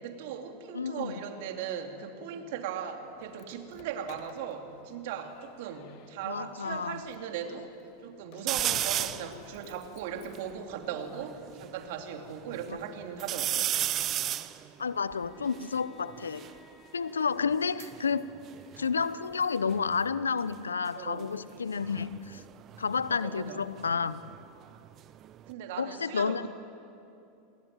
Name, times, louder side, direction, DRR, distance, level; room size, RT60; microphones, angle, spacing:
voice 1, 0.0-7.8 8.0-13.7 20.9-21.3 23.1-23.6 25.5-26.5, right 8 dB, 60° right, 5 dB, 3.1 m, -38 dB
voice 2, 0.7-1.2 6.2-7.0 14.8-16.5 16.9-18.3 18.8-22.4 22.8-24.2 25.8-26.5, left 5 dB, 85° left, 17 dB, 0.8 m, -30 dB
Slam, 3.0-10.5, left 11 dB, 55° left, 1.5 m, -52 dB
sound 1, 8.5-9.3 9.9-10.0 10.1-11.7 12.2-12.8 13.2-16.6 17.5-19.4 19.7-20.2 21.7-24.4 24.7-25.5, right 12 dB, 40° right, 1.1 m, -34 dB
Bowed string instrument, 15.1-20.1, left 5 dB, 35° left, 5.8 m, -58 dB
28.0 x 21.5 x 9.2 m, 2.7 s
hypercardioid pair, 90°, 0 cm